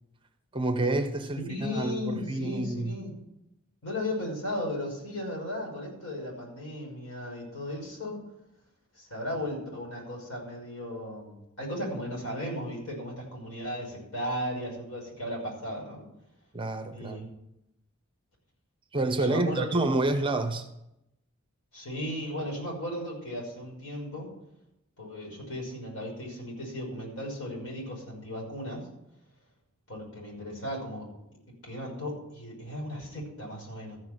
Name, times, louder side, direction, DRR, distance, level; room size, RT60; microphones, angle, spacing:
voice 1, 0.5-3.0 16.5-17.3 18.9-20.7, right 2 dB, 25° right, 0.9 m, -28 dB
voice 2, 1.3-3.1 3.8-8.2 8.9-16.0 16.9-17.2 19.3-19.7 21.7-24.3 25.0-28.9 29.9-31.0 31.6-34.0, left 1 dB, 80° left, 6.1 m, -36 dB
14.0 x 6.0 x 7.7 m
head